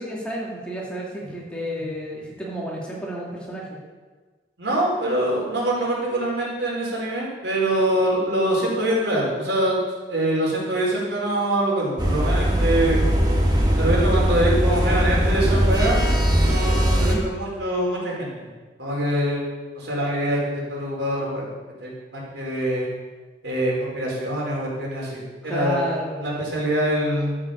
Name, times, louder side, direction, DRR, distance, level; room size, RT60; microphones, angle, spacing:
voice 1, 0.0-3.8 17.0-17.2 25.4-26.2, right 1 dB, 5° left, -4 dB, 2.6 m, -31 dB
voice 2, 4.6-9.8 10.1-13.1 13.8-16.1 16.4-18.3 18.8-21.4 21.8-22.9 23.4-25.8 26.2-27.4, right 1 dB, 85° right, -4 dB, 4.7 m, -24 dB
sound 1, 12.0-17.1, equal, 25° right, 1.8 m, -20 dB
12.5 x 7.6 x 7.1 m, 1.4 s
head